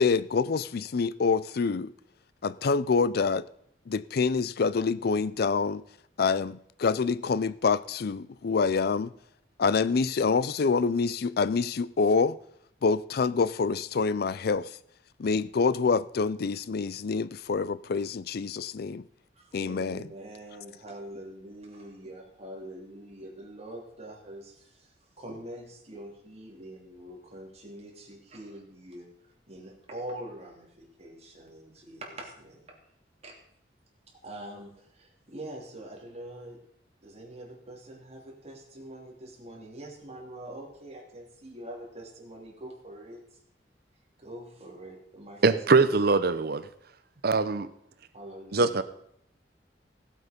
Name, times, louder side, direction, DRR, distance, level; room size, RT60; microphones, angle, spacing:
voice 1, 0.0-1.9 2.4-3.4 3.9-5.8 6.2-9.1 9.6-12.4 12.8-14.7 15.2-19.0 19.5-20.0, left 4 dB, 60° left, 0.4 m, -26 dB
voice 2, 19.3-29.1 29.5-32.8 33.2-33.4 34.2-36.6 37.0-43.4 44.2-45.9 48.1-48.8, right 1 dB, 35° right, 3.0 m, -44 dB
voice 3, 45.4-46.7 47.2-47.7 48.5-48.8, right 4 dB, 60° right, 0.8 m, -22 dB
16.5 x 8.0 x 5.2 m
head